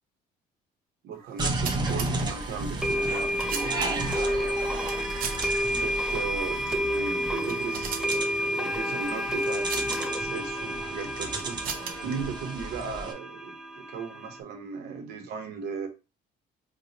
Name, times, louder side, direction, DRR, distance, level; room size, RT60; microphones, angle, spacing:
voice 1, 1.0-4.7 5.3-11.7 12.0-15.9, right 5 dB, 80° right, 3 dB, 1.0 m, -37 dB
sound 1, 1.3-2.1 2.9-4.2 4.8-5.5 5.8-5.9 6.6-6.9 7.2-8.2 9.4-10.0 11.0-12.1, right 6 dB, 55° right, 0.8 m, -37 dB
sound 2, 1.4-13.1, right 2 dB, 25° right, 0.7 m, -34 dB
sound 3, 1.9-2.0 2.8-14.4, equal, 5° right, 0.4 m, -30 dB
3.0 x 2.3 x 4.0 m, 0.29 s
cardioid pair, 110°, 17 cm